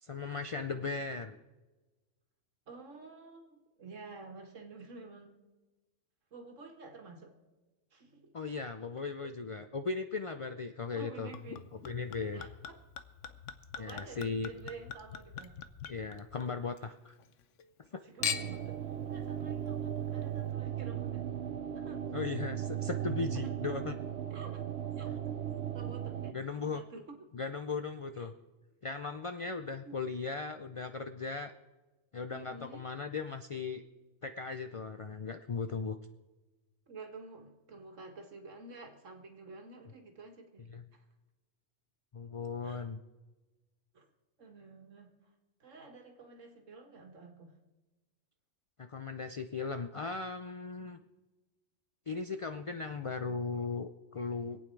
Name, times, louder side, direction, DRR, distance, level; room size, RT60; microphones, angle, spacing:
voice 1, 0.0-1.4 8.3-11.3 11.9-12.5 13.8-14.5 15.9-17.2 22.1-24.0 26.3-26.8 27.3-28.3 28.8-31.5 32.1-33.8 34.2-36.0 40.7-40.8 42.1-43.0 48.8-51.0 52.1-54.6, left 4 dB, 55° left, 8 dB, 0.3 m, -37 dB
voice 2, 0.7-1.1 2.7-5.3 6.3-7.3 7.9-8.4 9.2-9.3 11.0-11.7 12.3-12.8 13.8-15.6 18.0-21.3 21.7-22.1 23.3-23.5 24.3-24.6 25.0-25.3 25.7-27.2 28.2-28.3 29.8-30.0 32.3-32.9 36.9-41.0 42.6-42.9 43.9-44.1 44.4-45.2 45.6-47.6 50.8-51.0, right 3 dB, 80° right, 4 dB, 2.0 m, -50 dB
Chink clink / Liquid, 11.3-16.8 17.2-17.9 18.2-18.7 19.5-19.6, left 8 dB, 75° left, 1.2 m, -42 dB
sound 1, 18.2-26.3, right 10 dB, 65° right, 0.9 m, -37 dB
25.5 x 8.8 x 4.6 m, 1.2 s
omnidirectional pair, 1.3 m